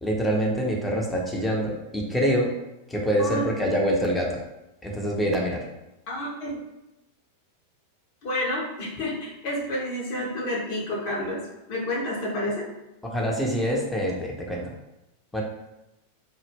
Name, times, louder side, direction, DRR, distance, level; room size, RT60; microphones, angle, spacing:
voice 1, 0.0-2.5 2.9-4.4 4.8-5.6 13.1-14.7 15.3-15.4, equal, 5° left, -2 dB, 0.5 m, -25 dB
voice 2, 6.1-6.6 8.2-12.7, left 1 dB, 45° left, -4 dB, 0.6 m, -29 dB
2.1 x 2.0 x 3.3 m, 0.95 s
figure-of-eight pair, 90°, 0 cm